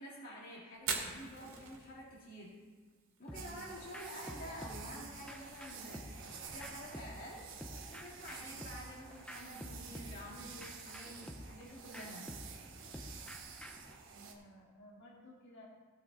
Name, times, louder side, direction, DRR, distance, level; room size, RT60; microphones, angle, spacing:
voice 1, 0.0-2.5 3.2-7.5 7.9-12.3, equal, 40° left, -6 dB, 2.2 m, -49 dB
Fire, 0.7-14.6, right 5 dB, 85° right, 2.2 m, -50 dB
voice 2, 3.3-3.8 14.1-15.6, equal, 55° left, -4 dB, 1.8 m, -57 dB
sound 1, 3.3-13.9, equal, 5° left, 0.8 m, -50 dB
sound 2, 3.3-14.3, right 6 dB, 60° right, 1.3 m, -51 dB
17.0 x 6.1 x 4.0 m, 1.5 s
head